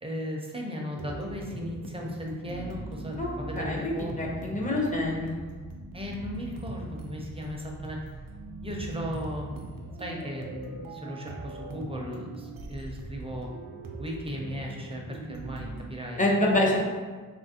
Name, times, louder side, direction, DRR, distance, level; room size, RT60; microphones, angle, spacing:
voice 1, 0.0-4.3 5.9-8.0 8.6-9.6 10.0-13.5 14.0-16.3 16.7-16.8, equal, 15° right, -1 dB, 0.5 m, -36 dB
sound 1, 0.9-15.9, right 2 dB, 70° right, 0.5 m, -40 dB
voice 2, 3.6-3.9 4.2-5.4 16.2-16.8, left 1 dB, 20° left, -3 dB, 0.7 m, -26 dB
2.9 x 2.5 x 2.7 m, 1.4 s
cardioid pair, 60°, 35 cm